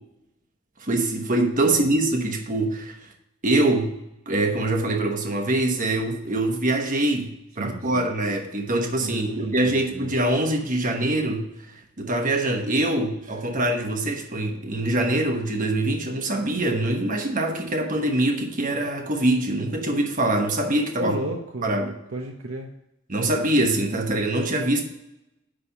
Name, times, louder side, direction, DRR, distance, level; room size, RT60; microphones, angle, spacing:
voice 1, 0.8-2.9 3.4-3.9 4.3-11.5 12.0-21.2 21.6-21.9 23.1-24.9, right 1 dB, 40° right, 3 dB, 1.2 m, -24 dB
voice 2, 7.6-8.0 9.0-10.1 20.9-21.8 22.1-22.7, right 1 dB, 80° right, 2 dB, 0.8 m, -33 dB
9.9 x 3.5 x 6.9 m, 0.89 s
head